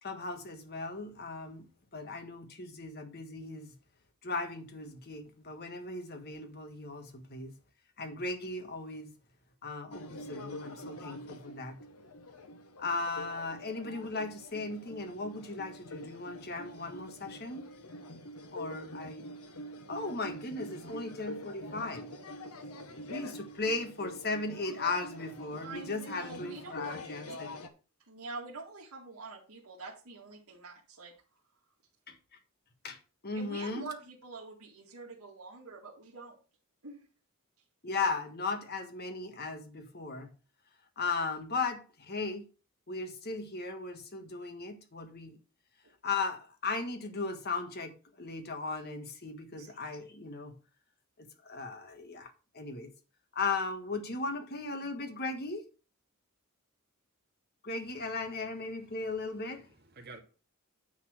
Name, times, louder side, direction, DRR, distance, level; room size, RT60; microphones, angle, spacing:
voice 1, 0.0-1.7 1.9-3.8 4.2-7.6 8.0-9.1 9.6-11.8 12.8-17.7 18.5-19.3 19.9-22.1 23.1-27.5 32.1-32.2 32.8-33.0 33.2-33.9 37.8-40.3 41.0-42.5 42.9-45.4 46.0-50.6 51.2-52.9 53.3-55.6 57.6-59.7, left 3 dB, 45° left, 1.5 m, -37 dB
sound 1, 9.9-27.7, left 1 dB, 85° left, 1.3 m, -45 dB
voice 2, 25.6-26.9 27.3-27.4 28.1-31.1 33.3-36.3 36.8-37.0 49.6-49.7, right 3 dB, 85° right, 2.1 m, -46 dB
voice 3, 58.7-60.2, right 3 dB, 45° right, 2.2 m, -54 dB
9.8 x 4.3 x 6.4 m
head